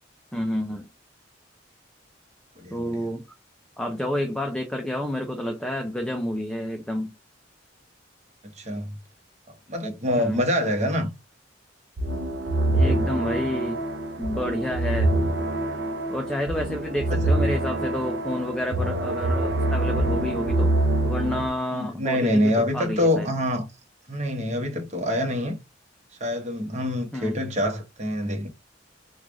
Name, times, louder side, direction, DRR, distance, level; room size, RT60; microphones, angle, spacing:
voice 1, 0.3-0.9 2.7-3.2 3.8-7.1 10.2-10.4 12.7-13.8 14.2-15.1 16.1-20.7 21.0-23.3 27.1-27.3, left 1 dB, 5° left, 0.4 m, -29 dB
voice 2, 2.6-3.0 8.6-8.9 9.7-11.1 17.1-17.3 21.7-23.7 24.1-25.6 26.2-28.5, left 1 dB, 40° right, 1.0 m, -25 dB
sound 1, 12.0-21.5, right 1 dB, 65° right, 0.6 m, -25 dB
3.2 x 2.3 x 3.6 m
head